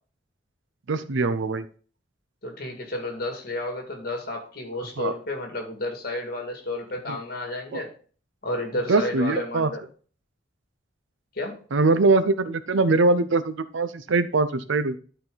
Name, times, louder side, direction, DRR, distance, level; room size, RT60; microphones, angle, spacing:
voice 1, 0.9-1.6 5.0-5.1 7.1-7.2 7.7-7.8 8.9-9.7 11.7-15.0, right 3 dB, 90° right, 13 dB, 0.6 m, -22 dB
voice 2, 2.4-7.9 8.4-9.8 11.4-11.6, left 2 dB, 55° left, 3 dB, 2.1 m, -31 dB
11.5 x 4.3 x 3.9 m, 0.42 s
head